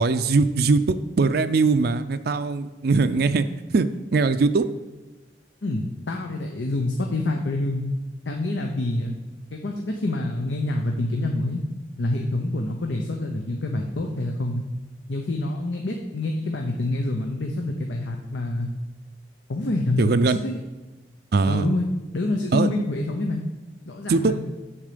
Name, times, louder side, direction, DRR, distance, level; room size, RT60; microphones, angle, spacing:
voice 1, 0.0-3.5 3.7-4.7 20.0-20.4 21.3-21.7 22.5-22.7 24.1-24.4, right 4 dB, 60° right, 11 dB, 0.4 m, -21 dB
voice 2, 5.6-7.8 8.3-9.1 9.5-11.6 12.0-14.6 15.1-18.7 19.5-20.6 21.5-21.8 22.1-23.4 23.8-24.4, left 2 dB, 85° left, 3 dB, 0.8 m, -27 dB
7.4 x 7.2 x 5.0 m, 1.2 s
head